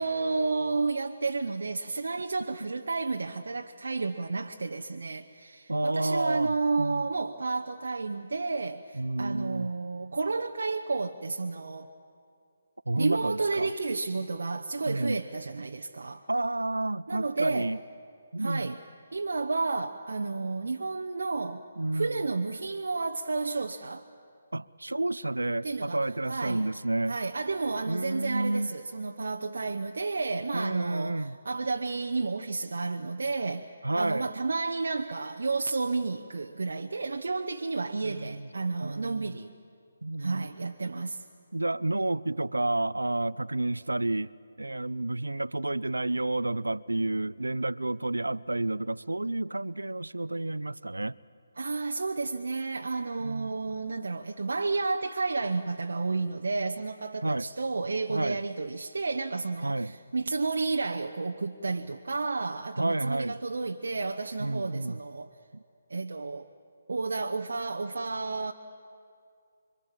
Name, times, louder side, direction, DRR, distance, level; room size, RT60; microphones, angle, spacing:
voice 1, 0.0-11.9 13.0-16.2 17.1-17.7 18.4-18.8 19.1-21.6 21.9-24.1 25.6-26.7 27.1-33.7 33.9-39.5 40.2-41.2 51.6-65.3 65.9-66.5 66.9-68.5, right 3 dB, 70° right, 0.9 m, -31 dB
voice 2, 5.7-7.1 8.9-9.7 12.9-13.7 14.9-15.2 16.3-17.8 18.3-18.8 21.8-22.3 24.5-27.2 27.9-28.7 30.5-31.4 33.8-34.3 38.0-38.5 38.8-39.3 40.0-40.5 41.5-44.3 44.6-51.2 53.2-53.5 57.2-57.4 58.1-58.4 59.6-60.0 62.7-63.4 64.4-65.0 65.5-65.6, right 2 dB, 90° right, 0.5 m, -30 dB
26.0 x 24.0 x 7.5 m
figure-of-eight pair, 145°, 0 cm